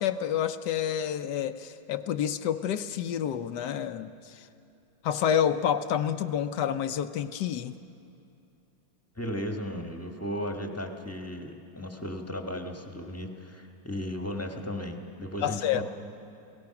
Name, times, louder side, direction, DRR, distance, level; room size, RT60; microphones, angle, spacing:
voice 1, 0.0-4.5 5.0-7.7 15.4-15.8, left 9 dB, 70° left, 11 dB, 1.1 m, -29 dB
voice 2, 9.2-15.8, left 1 dB, 10° left, 3 dB, 1.1 m, -35 dB
30.0 x 18.5 x 5.9 m, 2.7 s
omnidirectional pair, 2.1 m